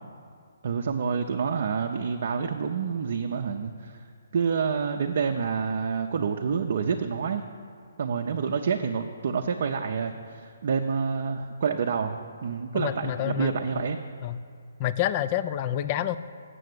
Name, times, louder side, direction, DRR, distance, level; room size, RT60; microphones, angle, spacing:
voice 1, 0.6-4.0 4.3-7.4 8.0-14.0, right 6 dB, 55° right, 3 dB, 0.6 m, -28 dB
voice 2, 12.7-13.6 14.2-14.4 14.8-16.2, left 12 dB, 30° left, 13 dB, 0.4 m, -28 dB
7.6 x 6.5 x 8.0 m, 2.2 s
hypercardioid pair, 155°, 0 cm